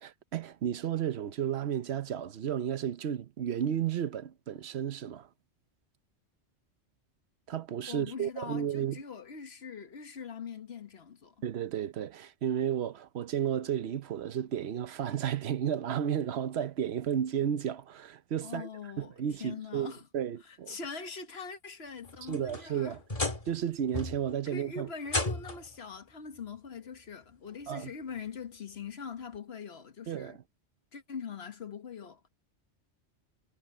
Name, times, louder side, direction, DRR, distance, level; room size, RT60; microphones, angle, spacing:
voice 1, 0.0-5.3 7.5-9.0 11.4-18.7 19.0-20.7 22.3-23.0 23.5-24.9 27.7-27.9 30.1-30.4, right 9 dB, 65° right, 1.0 m, -33 dB
voice 2, 7.9-11.3 18.4-19.1 19.4-20.1 20.5-23.0 24.5-30.4 30.9-32.2, left 5 dB, 60° left, 1.5 m, -42 dB
sound 1, 22.0-23.6 23.9-24.4 25.1-25.8 26.9-27.0 27.7-27.8 29.3-29.4, left 2 dB, 30° left, 1.9 m, -34 dB
omnidirectional pair, 1.2 m